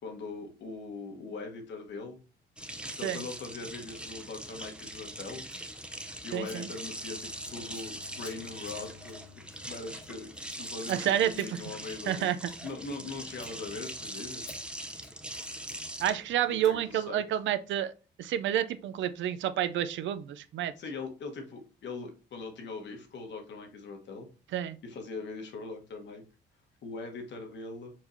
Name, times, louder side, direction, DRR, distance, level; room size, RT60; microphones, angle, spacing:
voice 1, 0.0-2.2 2.9-5.4 6.2-9.2 9.6-12.3 12.6-14.6 16.5-17.2 20.8-24.3 24.8-26.2 26.8-27.9, left 3 dB, 65° left, 1.2 m, -41 dB
sound 1, 2.6-17.0, right 1 dB, 5° right, 0.6 m, -42 dB
Scissors, 5.4-5.7 6.4-6.6 6.8-7.1 7.4-13.1 13.3-13.5 13.9-14.0 14.5-14.6 14.9-15.8 16.6-16.7, left 4 dB, 80° left, 1.6 m, -55 dB
voice 2, 6.3-6.7 10.9-11.5 12.1-12.4 16.0-17.9 18.2-20.7 24.5-24.8, right 11 dB, 75° right, 0.4 m, -29 dB
Bowed string instrument, 6.6-10.9, left 6 dB, 25° right, 1.4 m, -57 dB
4.6 x 4.3 x 2.6 m
cardioid pair, 90°, 20 cm